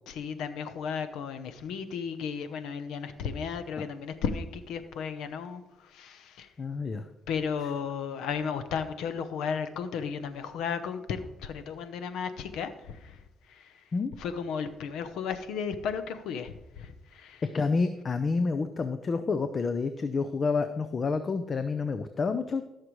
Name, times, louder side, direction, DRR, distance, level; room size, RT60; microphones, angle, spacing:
voice 1, 0.1-6.5 7.3-13.2 13.5-13.7 14.2-17.4, left 6 dB, 85° left, 11 dB, 0.8 m, -34 dB
voice 2, 6.6-7.1 13.9-14.1 17.5-22.7, left 4 dB, 40° left, 9 dB, 0.6 m, -29 dB
14.5 x 6.6 x 3.1 m, 0.92 s
cardioid pair, 90°, 0 cm